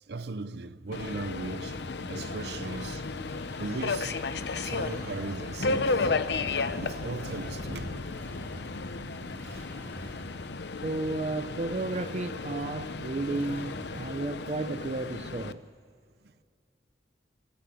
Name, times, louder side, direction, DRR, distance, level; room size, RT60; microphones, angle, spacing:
voice 1, 0.1-3.1 3.6-6.1 6.8-8.1 9.4-9.7 10.0-10.1, right 3 dB, 70° right, 0.7 m, -38 dB
Subway metro underground, 0.9-15.5, left 4 dB, 75° left, 0.7 m, -34 dB
sound 1, 0.9-14.2, equal, 15° left, 2.6 m, -46 dB
sound 2, 5.6-9.3, left 2 dB, 90° left, 1.1 m, -38 dB
voice 2, 10.8-15.7, right 2 dB, 35° right, 0.5 m, -33 dB
27.5 x 14.0 x 8.3 m
head